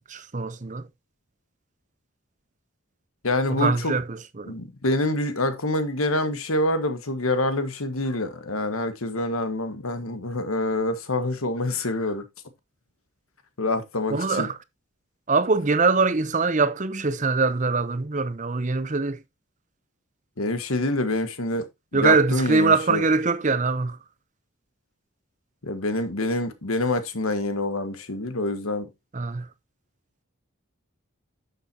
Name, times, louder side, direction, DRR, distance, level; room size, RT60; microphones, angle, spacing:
voice 1, 0.1-0.9 3.5-4.5 14.1-14.5 15.3-19.2 21.9-24.0 29.1-29.5, right 4 dB, 35° right, 0.7 m, -23 dB
voice 2, 3.2-3.9 4.5-12.2 13.6-14.5 20.4-21.7 21.9-23.1 25.6-28.9, left 2 dB, 80° left, 1.6 m, -26 dB
11.0 x 7.1 x 2.8 m
head